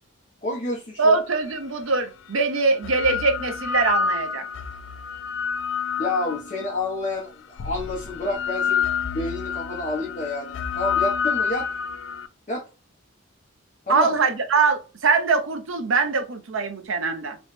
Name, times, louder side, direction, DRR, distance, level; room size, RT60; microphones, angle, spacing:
voice 1, 0.4-1.2 6.0-8.9 9.1-11.7 12.5-12.7 13.9-14.1, left 2 dB, 35° left, 0.9 m, -29 dB
voice 2, 1.0-4.4 13.9-17.4, right 4 dB, 75° right, 0.7 m, -22 dB
sound 1, 1.5-1.6 2.6-6.8 7.6-12.3, left 6 dB, 60° left, 0.3 m, -28 dB
3.1 x 3.1 x 3.1 m
head